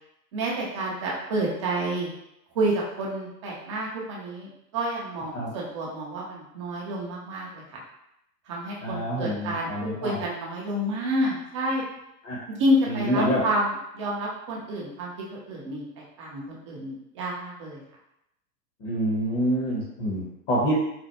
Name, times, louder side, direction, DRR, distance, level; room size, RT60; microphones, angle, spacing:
voice 1, 0.3-2.1 2.5-7.8 8.5-11.8 12.5-15.1 15.5-17.8, right 1 dB, 20° right, -3 dB, 0.3 m, -29 dB
voice 2, 8.8-10.2 12.2-12.4 12.9-13.4 18.8-20.7, equal, 30° left, -5 dB, 0.8 m, -27 dB
4.0 x 2.1 x 2.7 m, 0.82 s
hypercardioid pair, 115°, 49 cm